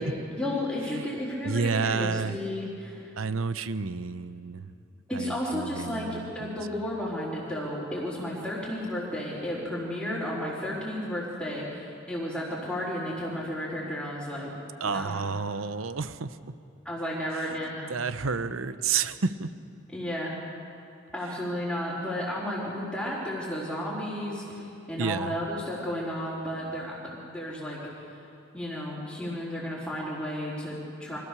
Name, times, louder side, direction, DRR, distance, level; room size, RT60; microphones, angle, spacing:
voice 1, 0.0-3.2 5.1-14.5 14.8-15.2 16.8-18.0 19.9-20.4 21.1-28.2 28.5-31.2, left 1 dB, 5° left, -11 dB, 4.2 m, -33 dB
voice 2, 1.4-2.4 3.2-4.7 5.1-6.6 14.8-16.5 17.9-19.5 25.0-25.4, right 5 dB, 85° right, 13 dB, 0.8 m, -30 dB
25.0 x 15.5 x 6.9 m, 2.6 s
head